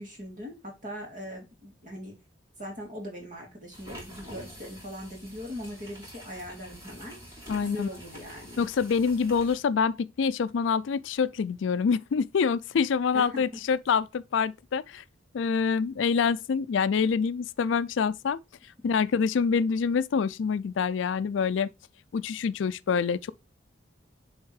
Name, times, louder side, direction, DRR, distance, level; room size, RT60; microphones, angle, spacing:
voice 1, 0.0-2.2 2.6-7.2 7.6-8.7 13.1-13.6, equal, 40° right, 2.6 m, -40 dB
sound 1, 3.7-9.6, equal, 15° right, 3.4 m, -47 dB
voice 2, 7.5-7.9 8.6-15.0 15.3-18.4 18.8-21.7 22.1-23.3, left 6 dB, 75° left, 0.4 m, -26 dB
7.0 x 3.6 x 4.7 m
head